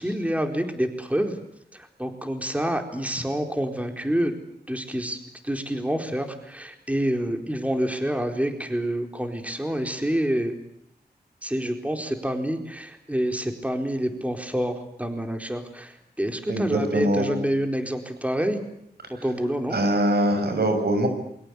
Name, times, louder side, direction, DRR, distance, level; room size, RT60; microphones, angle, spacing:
voice 1, 0.0-1.4 1.7-4.4 4.7-5.2 5.4-10.5 11.4-18.6 19.1-19.8, equal, 10° right, 5 dB, 4.4 m, -27 dB
voice 2, 16.5-17.3 19.7-21.1, right 1 dB, 75° right, 7 dB, 6.8 m, -23 dB
28.0 x 24.5 x 8.4 m, 0.74 s
cardioid pair, 55°, 17 cm